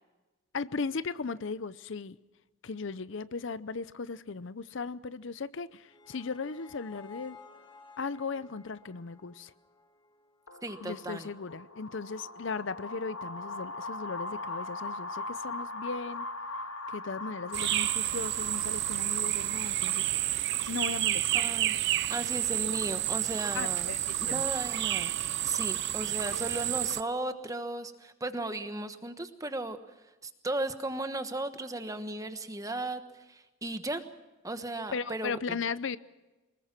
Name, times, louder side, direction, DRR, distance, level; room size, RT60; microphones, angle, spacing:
voice 1, 0.5-2.2 2.6-7.4 8.0-9.5 10.8-16.3 16.9-20.3 20.7-21.5 23.5-24.4 26.3-26.5 34.9-36.0, left 4 dB, 60° left, 16 dB, 0.6 m, -37 dB
sound 1, 5.5-10.6, left 5 dB, 20° left, 1.8 m, -55 dB
sound 2, 10.5-19.9, left 2 dB, 80° left, 1.7 m, -40 dB
voice 2, 10.6-11.3 21.3-21.8 22.1-23.9 24.2-25.1 25.4-29.8 30.2-33.0 33.3-34.0 34.4-35.4, right 2 dB, 15° right, 9 dB, 1.2 m, -35 dB
sound 3, 17.5-27.0, right 13 dB, 55° right, 0.6 m, -30 dB
24.0 x 21.0 x 5.9 m, 1.1 s
head